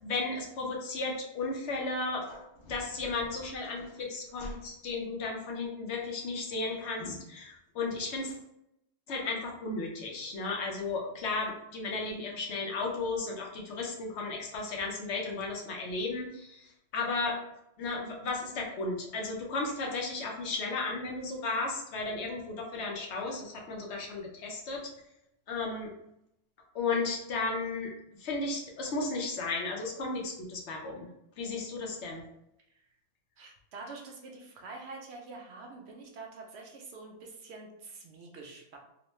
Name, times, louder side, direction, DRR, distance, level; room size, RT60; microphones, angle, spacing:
voice 1, 0.0-8.4 9.1-17.4 17.8-24.9 25.5-25.9 26.7-27.9 28.2-31.1 31.4-32.2, left 3 dB, 65° left, 0 dB, 0.9 m, -34 dB
voice 2, 33.4-38.8, right 3 dB, 65° right, 1 dB, 0.8 m, -46 dB
3.0 x 2.1 x 3.0 m, 0.81 s
omnidirectional pair, 1.3 m